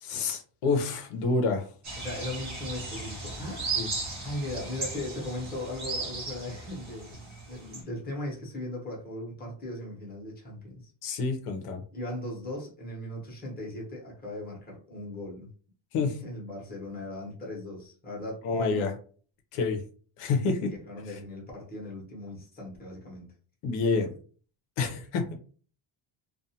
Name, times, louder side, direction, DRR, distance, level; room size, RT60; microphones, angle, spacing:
voice 1, 0.0-1.7 3.8-3.9 11.0-11.8 15.9-16.2 18.4-18.9 19.5-19.8 20.2-20.7 23.6-24.1 24.8-25.3, left 4 dB, 85° left, 4 dB, 0.8 m, -28 dB
sound 1, 1.8-7.8, right 3 dB, 35° right, 0.9 m, -36 dB
voice 2, 2.0-3.8 4.2-10.9 11.9-15.5 16.2-19.0 20.5-23.3 23.9-24.0, left 1 dB, 20° left, -3 dB, 0.9 m, -38 dB
2.4 x 2.3 x 2.7 m, 0.41 s
cardioid pair, 175°, 50 cm